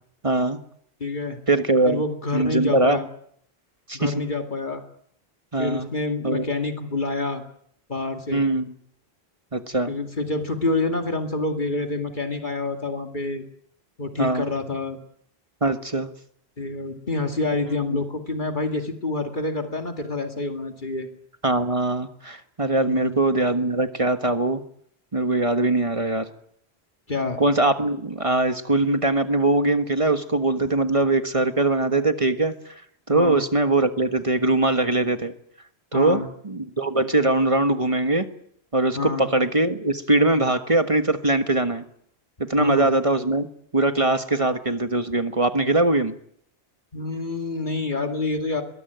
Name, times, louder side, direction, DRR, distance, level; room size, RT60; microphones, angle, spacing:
voice 1, 0.2-0.6 1.5-2.0 2.3-3.0 3.9-4.1 5.5-5.9 6.2-6.5 8.3-8.7 9.5-9.9 14.2-14.5 15.6-16.1 17.9-18.0 21.4-24.6 25.1-26.3 27.4-32.7 33.1-35.3 35.9-38.3 38.7-41.8 42.5-43.5 43.7-46.1, right 2 dB, 30° right, 8 dB, 1.5 m, -21 dB
voice 2, 1.0-1.4 1.9-3.1 3.9-4.8 5.6-7.4 7.9-8.4 9.9-13.4 14.0-15.0 16.6-21.1 22.8-23.2 27.1-27.4 33.1-33.4 35.9-36.3 39.0-39.3 42.6-42.9 46.9-48.6, left 3 dB, 50° left, 4 dB, 2.4 m, -27 dB
22.5 x 22.0 x 9.2 m, 0.68 s
omnidirectional pair, 1.1 m